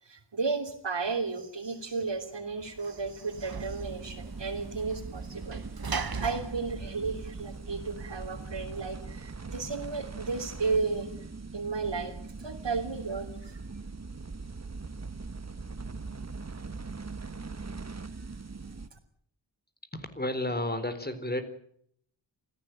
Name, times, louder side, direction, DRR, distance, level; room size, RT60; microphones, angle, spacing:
voice 1, 0.0-11.2 11.5-13.6 16.5-16.6 18.0-18.1 18.9-19.0, right 4 dB, 70° right, 0 dB, 3.4 m, -34 dB
Sliding door / Slam, 2.1-8.0, right 5 dB, 55° right, 1.5 m, -40 dB
sound 1, 3.3-18.9, right 4 dB, 35° right, 1.5 m, -41 dB
voice 2, 19.9-21.4, left 1 dB, 20° left, 10 dB, 3.9 m, -32 dB
27.0 x 16.0 x 9.2 m, 0.68 s
wide cardioid pair, 90°, 44 cm